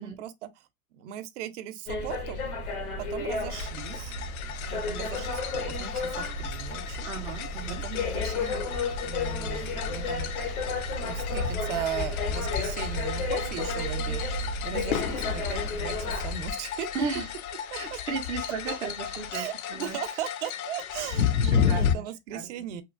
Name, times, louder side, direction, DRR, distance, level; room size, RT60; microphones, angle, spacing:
voice 1, 0.0-2.4 3.0-4.1 4.7-7.1 7.8-8.6 9.0-10.3 11.0-16.9 17.7-18.0 18.7-18.8 19.3-22.8, right 10 dB, 55° right, 0.6 m, -38 dB
sound 1, 1.9-16.5, left 2 dB, 90° left, 1.0 m, -33 dB
sound 2, 3.5-22.0, left 8 dB, 75° left, 0.5 m, -33 dB
voice 2, 7.0-7.8 14.7-14.9 16.9-17.3 17.7-19.4 19.7-20.0 21.1-22.0 22.3-22.4, right 4 dB, 10° right, 0.3 m, -35 dB
2.9 x 2.2 x 2.4 m
hypercardioid pair, 110°, 43 cm